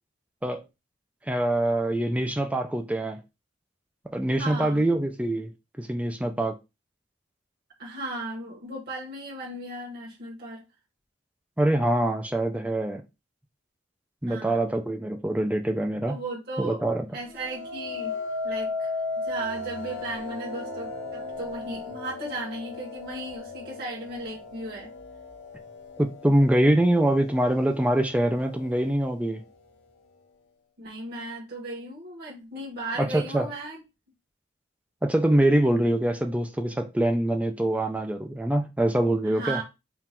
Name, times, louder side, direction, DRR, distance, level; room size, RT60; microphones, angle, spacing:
voice 1, 1.3-3.2 4.1-5.5 5.8-6.5 11.6-13.0 14.2-16.2 16.6-17.1 26.0-29.4 33.0-33.5 35.0-39.6, right 1 dB, 5° right, 0.4 m, -24 dB
voice 2, 4.4-4.8 7.8-10.6 14.2-14.6 16.1-16.8 17.1-18.2 18.4-18.9 19.2-24.9 30.8-33.8 39.2-39.6, right 2 dB, 55° right, 1.4 m, -36 dB
sound 1, 17.3-26.5 27.0-27.5, left 3 dB, 65° left, 0.8 m, -35 dB
3.7 x 2.4 x 4.3 m
head